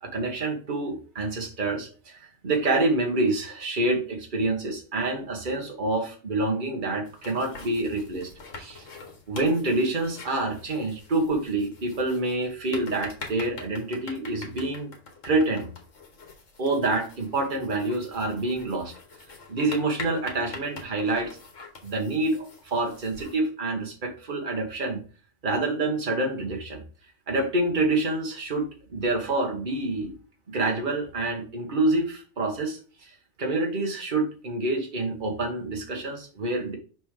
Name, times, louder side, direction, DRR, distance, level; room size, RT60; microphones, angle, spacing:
voice 1, 0.0-8.3 8.6-8.9 9.3-14.9 15.2-15.7 16.6-18.9 19.5-21.4 21.8-25.0 25.4-26.8 27.3-30.1 30.5-33.1 33.4-36.8, right 2 dB, 40° right, 1 dB, 1.7 m, -27 dB
sound 1, 7.0-23.4, left 4 dB, 80° left, 1.9 m, -44 dB
6.1 x 5.2 x 3.9 m, 0.37 s
omnidirectional pair, 1.3 m